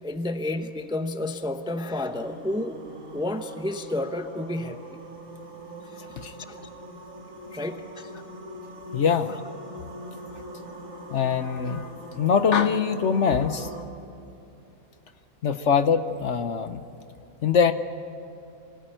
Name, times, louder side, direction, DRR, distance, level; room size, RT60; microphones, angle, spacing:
voice 1, 0.0-2.8 3.1-4.9 6.2-6.7 7.5-8.1, left 1 dB, 5° right, 7 dB, 0.7 m, -31 dB
sound 1, 2.1-13.8, right 1 dB, 65° right, 2.4 m, -42 dB
voice 2, 6.0-6.3 8.9-9.3 11.1-13.7 15.4-16.8 17.4-17.7, left 6 dB, 60° left, 10 dB, 1.1 m, -23 dB
25.5 x 18.0 x 9.1 m, 2.7 s
omnidirectional pair, 1.5 m